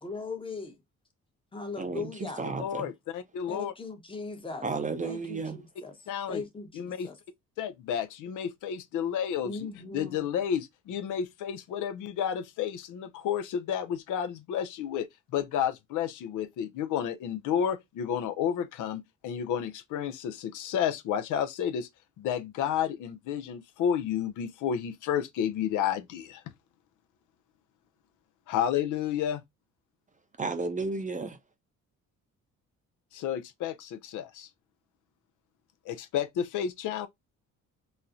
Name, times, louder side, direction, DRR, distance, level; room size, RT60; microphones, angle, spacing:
voice 1, 0.0-0.8 1.5-2.4 3.5-4.7 5.0-5.9 6.3-7.2 9.4-10.2, left 4 dB, 15° left, 0.8 m, -39 dB
voice 2, 1.8-2.9 4.6-5.6 30.4-31.4, right 4 dB, 25° right, 0.5 m, -33 dB
voice 3, 2.6-3.7 6.1-6.4 6.7-7.1 7.6-9.6 9.9-15.1 15.3-21.9 22.2-26.4 28.5-29.4 33.1-34.5 35.9-37.1, left 9 dB, 80° left, 0.5 m, -31 dB
4.1 x 2.0 x 2.5 m
cardioid pair, 90°, 30 cm